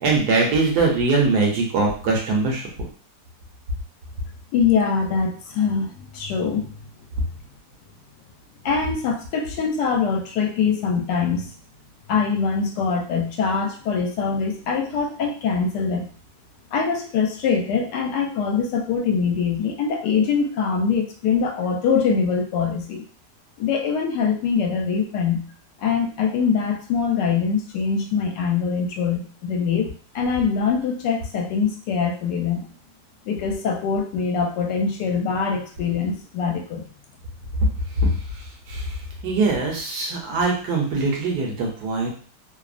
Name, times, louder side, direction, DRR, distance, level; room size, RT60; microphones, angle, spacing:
voice 1, 0.0-2.6 38.0-38.1 38.7-38.9 39.2-42.1, right 3 dB, 75° right, -1 dB, 1.3 m, -21 dB
voice 2, 4.5-6.7 8.6-11.5 12.1-16.1 16.7-23.0 23.6-25.4 25.8-32.6 33.3-36.9, left 5 dB, 80° left, 2 dB, 1.2 m, -23 dB
3.2 x 2.0 x 2.4 m, 0.42 s
omnidirectional pair, 1.8 m